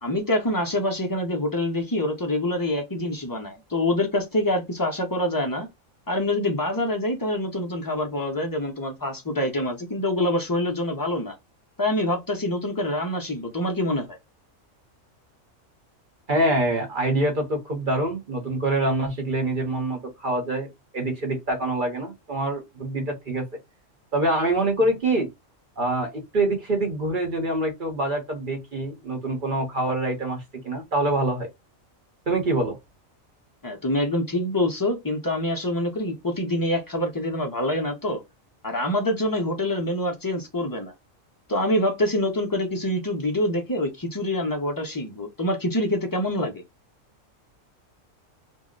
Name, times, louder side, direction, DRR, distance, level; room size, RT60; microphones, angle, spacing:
voice 1, 0.0-5.7 6.1-11.4 11.8-14.2 33.6-38.2 38.6-40.9 41.5-46.6, left 1 dB, 30° left, 0.3 m, -26 dB
voice 2, 16.3-23.5 24.1-25.3 25.8-31.5 32.3-32.8, right 2 dB, 45° right, 1.0 m, -25 dB
2.7 x 2.0 x 3.6 m
omnidirectional pair, 1.4 m